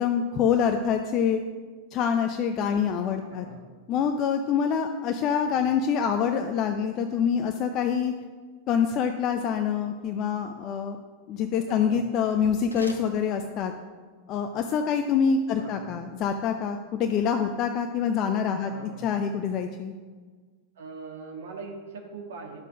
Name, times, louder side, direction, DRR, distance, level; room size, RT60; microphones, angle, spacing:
voice 1, 0.0-1.4 1.9-3.5 3.9-8.1 8.7-11.0 11.3-13.7 14.3-18.7 19.0-19.9, left 7 dB, 35° left, 6 dB, 0.6 m, -26 dB
voice 2, 3.2-3.7 5.5-5.7 11.6-12.1 15.6-16.0 18.6-19.2 20.8-22.6, right 4 dB, 60° right, 2 dB, 1.8 m, -42 dB
sound 1, 12.5-13.9, left 1 dB, 85° left, 1.2 m, -47 dB
10.5 x 6.8 x 5.9 m, 1.5 s
figure-of-eight pair, 90°, 0 cm